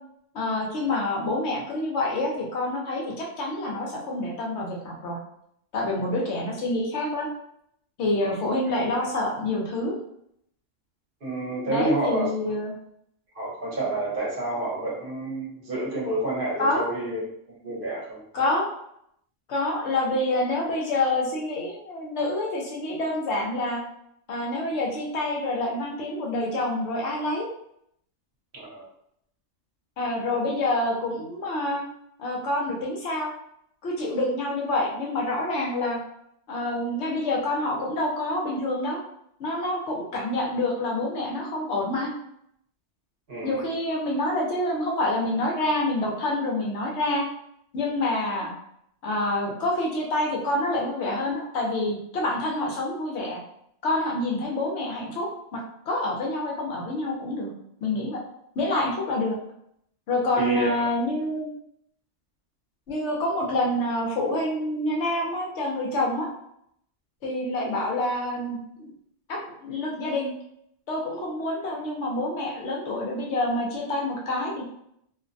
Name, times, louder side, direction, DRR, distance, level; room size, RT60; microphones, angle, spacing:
voice 1, 0.3-5.2 5.7-7.3 8.0-9.9 11.7-12.7 16.6-16.9 18.3-18.7 19.5-23.8 24.3-27.5 30.0-31.8 32.2-33.3 33.8-36.0 36.5-39.0 39.4-42.1 43.4-47.2 47.7-48.5 49.0-53.4 53.8-55.6 55.9-57.5 57.8-58.2 58.6-59.4 60.1-61.5 62.9-66.3 67.2-68.9 69.3-70.3 70.9-74.7, left 2 dB, 70° left, -2 dB, 0.9 m, -27 dB
voice 2, 11.2-12.3 13.3-17.2 17.6-18.2 28.5-28.8 43.3-43.7 60.4-60.9, right 2 dB, 50° right, -6 dB, 0.9 m, -29 dB
2.5 x 2.1 x 2.5 m, 0.73 s
omnidirectional pair, 1.3 m